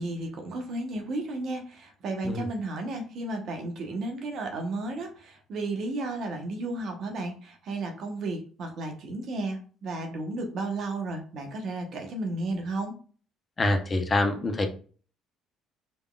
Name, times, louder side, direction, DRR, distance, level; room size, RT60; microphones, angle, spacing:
voice 1, 0.0-12.9, right 2 dB, 55° right, 3 dB, 1.0 m, -33 dB
voice 2, 13.6-14.7, left 2 dB, 30° left, 5 dB, 0.8 m, -25 dB
5.3 x 3.4 x 2.4 m, 0.41 s
hypercardioid pair, 60°, 0 cm